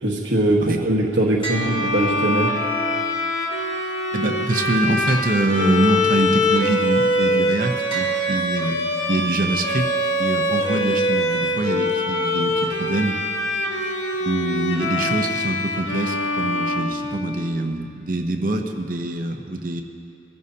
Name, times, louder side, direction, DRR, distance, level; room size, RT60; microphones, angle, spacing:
voice 1, 0.0-2.5, right 1 dB, 80° right, -2 dB, 1.4 m, -21 dB
sound 1, 1.4-2.7 5.1-6.1 7.9-9.1, right 3 dB, 25° left, 1.7 m, -34 dB
Bowed string instrument, 1.5-17.5, left 1 dB, 75° left, 2.1 m, -23 dB
voice 2, 4.1-9.9 10.2-13.2 14.2-19.8, right 2 dB, 50° right, 3 dB, 0.8 m, -24 dB
23.5 x 14.5 x 2.8 m, 2.8 s
head